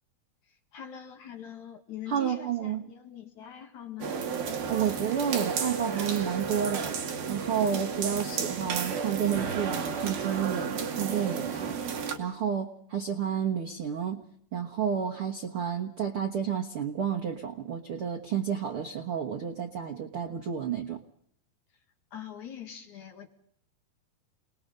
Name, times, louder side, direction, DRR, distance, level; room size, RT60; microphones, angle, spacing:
voice 1, 0.5-4.3 22.1-23.3, left 9 dB, 50° left, 2.9 m, -43 dB
voice 2, 2.1-2.9 4.7-7.0 7.3-11.8 12.2-14.2 14.5-21.0, right 8 dB, 80° right, 1.2 m, -30 dB
sound 1, 4.0-12.2, right 6 dB, 60° right, 4.1 m, -32 dB
29.5 x 20.5 x 5.5 m
omnidirectional pair, 4.9 m